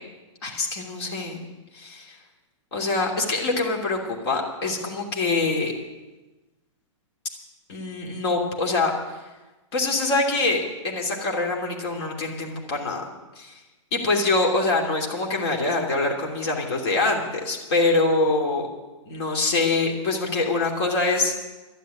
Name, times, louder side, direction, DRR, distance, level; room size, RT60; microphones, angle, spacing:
voice 1, 0.4-1.5 1.7-2.2 2.7-5.7 7.7-9.2 9.7-13.0 13.4-13.5 13.9-18.7 19.1-21.4, left 3 dB, 50° left, 1 dB, 2.9 m, -24 dB
12.0 x 10.0 x 9.5 m, 1.1 s
hypercardioid pair, 150°, 17 cm